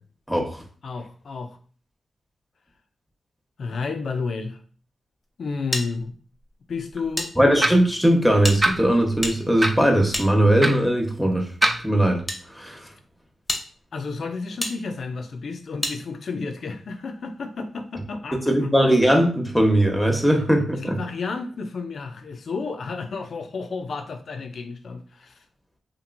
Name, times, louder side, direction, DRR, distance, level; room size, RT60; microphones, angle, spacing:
voice 1, 0.3-0.6 7.4-11.5 11.8-12.9 18.5-21.0, right 1 dB, ahead, 2 dB, 0.9 m, -20 dB
voice 2, 0.8-1.6 3.6-4.6 5.4-6.1 6.7-7.3 13.9-18.4 20.8-25.4, left 4 dB, 65° left, 7 dB, 0.4 m, -31 dB
sound 1, 5.7-7.3 7.6-7.7 8.4-10.9 11.7-12.4 13.0-13.1 13.5-13.6 14.6-14.7 15.8-16.0, left 1 dB, 25° left, 0.7 m, -31 dB
sound 2, 7.6-7.9 8.6-8.8 9.6-9.8 10.6-10.8 11.6-11.8, right 1 dB, 30° right, 0.6 m, -21 dB
2.9 x 2.5 x 2.5 m, 0.43 s
supercardioid pair, 40°, 0 cm